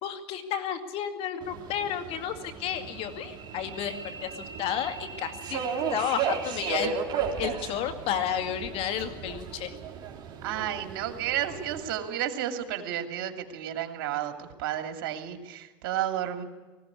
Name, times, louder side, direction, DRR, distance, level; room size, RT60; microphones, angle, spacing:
voice 1, 0.0-4.0 4.2-5.6 5.9-7.0 7.4-9.8, left 9 dB, 55° left, 9 dB, 2.2 m, -32 dB
Subway metro underground, 1.4-11.9, right 6 dB, 40° right, 3.6 m, -35 dB
voice 2, 10.4-16.4, right 11 dB, 75° right, 6 dB, 2.5 m, -32 dB
19.0 x 15.5 x 9.8 m, 1.2 s
supercardioid pair, 115°, 12 cm